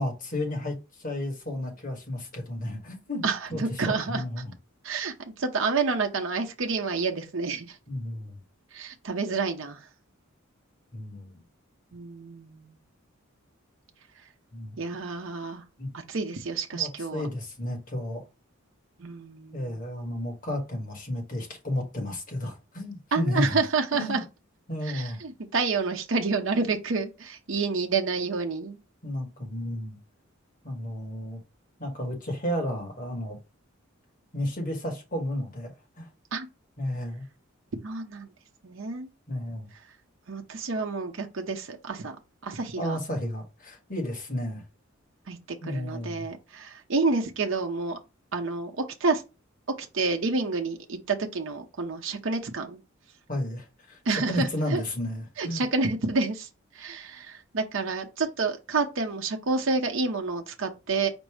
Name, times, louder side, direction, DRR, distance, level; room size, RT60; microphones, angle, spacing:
voice 1, 0.0-3.2 3.5-3.6 4.1-4.5 7.9-8.4 10.9-11.4 14.5-14.8 15.8-15.9 16.7-18.2 19.5-23.6 23.9-24.2 24.7-25.2 29.0-30.0 30.6-31.4 31.8-33.4 34.3-35.7 36.0-36.1 36.8-37.2 39.3-39.7 42.8-44.6 45.6-46.3 53.3-54.0 54.3-55.6, left 1 dB, 40° left, 1.4 m, -32 dB
voice 2, 3.2-4.2 4.8-7.8 8.7-9.9 11.9-12.8 14.8-15.6 15.9-17.3 19.0-19.8 23.1-24.2 24.8-28.8 36.3-36.5 37.8-38.3 38.6-39.1 40.3-42.2 42.4-43.0 45.3-48.0 48.3-49.2 49.8-52.8 54.0-54.8 55.4-61.1, right 4 dB, 65° right, 0.7 m, -29 dB
5.2 x 2.0 x 4.8 m
head